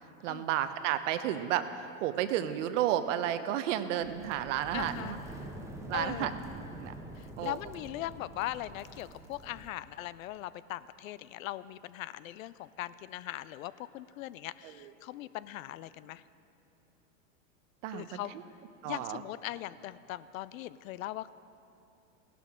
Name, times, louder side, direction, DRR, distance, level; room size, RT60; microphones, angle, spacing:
voice 1, 0.2-1.7 2.0-5.2 5.9-6.4 6.8-6.9 7.4-7.6 14.6-14.9 17.8-18.4 18.8-19.2, right 11 dB, 65° right, 11 dB, 0.8 m, -32 dB
sound 1, 4.0-9.7, right 1 dB, 5° right, 1.0 m, -46 dB
voice 2, 4.7-5.2 5.9-6.3 7.4-16.2 17.9-18.3 18.9-21.3, left 14 dB, 75° left, 17 dB, 0.5 m, -40 dB
16.0 x 12.0 x 3.7 m, 2.8 s
hypercardioid pair, 115°, 41 cm